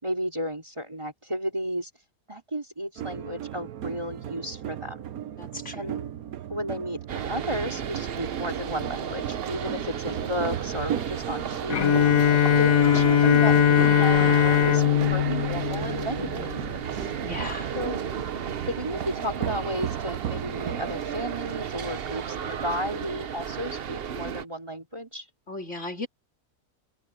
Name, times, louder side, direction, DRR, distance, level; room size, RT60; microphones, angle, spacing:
voice 1, 0.0-1.9 2.3-5.0 5.7-6.1 6.5-12.1 12.6-14.8 15.1-17.1 17.7-18.0 18.6-25.3, equal, 20° right, 3.4 m, -33 dB
sound 1, 3.0-21.0, right 10 dB, 70° right, 1.3 m, -36 dB
voice 2, 5.4-6.0 16.2-16.6 17.2-17.7 25.5-26.1, left 2 dB, 50° left, 4.0 m, -37 dB
sound 2, 7.1-24.4, right 8 dB, 50° right, 0.9 m, -34 dB
Bowed string instrument, 11.7-16.6, left 9 dB, 65° left, 1.6 m, -20 dB
open air
omnidirectional pair, 1.6 m